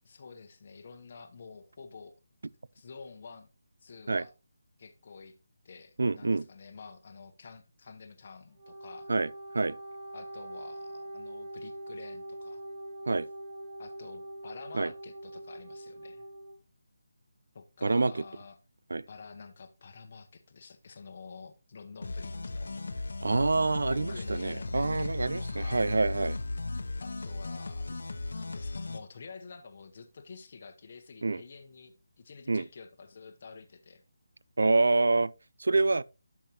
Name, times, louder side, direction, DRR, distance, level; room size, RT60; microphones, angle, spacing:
voice 1, 0.0-2.1 2.7-3.5 3.8-4.3 4.8-5.4 5.6-9.1 10.1-12.6 13.8-16.3 17.5-18.6 19.1-22.7 23.8-25.8 27.0-34.0, left 4 dB, 35° left, 0.9 m, -49 dB
voice 2, 6.0-6.4 9.1-9.3 9.5-9.8 13.1-13.3 14.7-14.9 17.8-18.2 18.9-19.0 23.2-26.4 31.2-31.4 32.5-32.6 34.6-35.3 35.6-36.0, right 3 dB, 70° right, 0.3 m, -26 dB
Wind instrument woodwind instrument, 8.5-16.5, right 1 dB, 20° right, 2.2 m, -43 dB
sound 1, 22.0-29.0, left 2 dB, 65° left, 1.0 m, -36 dB
10.5 x 6.1 x 2.9 m
figure-of-eight pair, 175°, 0 cm